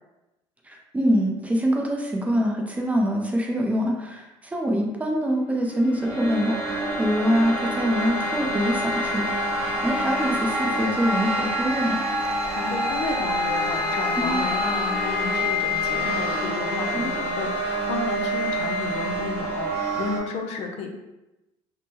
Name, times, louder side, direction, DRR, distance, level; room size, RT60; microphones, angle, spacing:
voice 1, 0.7-12.0 14.2-14.4 16.9-17.2, equal, 10° right, 0 dB, 0.5 m, -25 dB
sound 1, 5.6-20.2, equal, 60° right, 1.1 m, -26 dB
voice 2, 12.5-20.9, left 4 dB, 65° left, 3 dB, 0.5 m, -32 dB
3.5 x 2.0 x 2.8 m, 0.98 s
cardioid pair, 125°, 11 cm